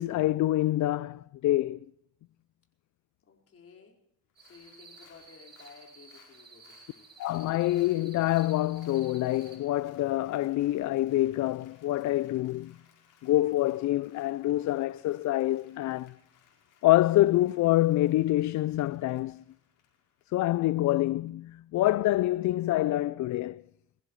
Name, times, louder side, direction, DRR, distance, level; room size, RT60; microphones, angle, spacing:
voice 1, 0.0-1.8 7.2-12.8 13.2-16.1 16.8-19.4 20.3-23.6, left 15 dB, 70° left, 0.5 m, -26 dB
voice 2, 3.2-4.0 4.4-7.1, left 5 dB, 50° left, 4.8 m, -55 dB
Applause, 4.3-20.9 21.3-21.4, left 7 dB, 85° left, 4.6 m, -64 dB
sound 1, 4.4-9.6, right 4 dB, 35° right, 5.4 m, -54 dB
22.5 x 15.0 x 3.2 m
cardioid pair, 90°, 30 cm